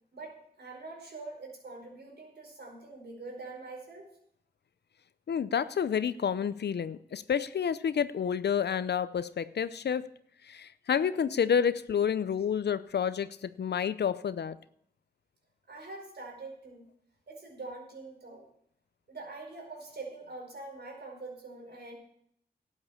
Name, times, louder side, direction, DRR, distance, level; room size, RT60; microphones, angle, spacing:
voice 1, 0.1-4.1 15.7-16.8 17.3-18.5 19.1-21.9, right 3 dB, 75° right, 1 dB, 4.8 m, -44 dB
voice 2, 5.3-10.1 10.5-14.6, left 7 dB, 75° left, 16 dB, 0.6 m, -29 dB
12.0 x 8.7 x 7.1 m, 0.70 s
cardioid pair, 45°, 17 cm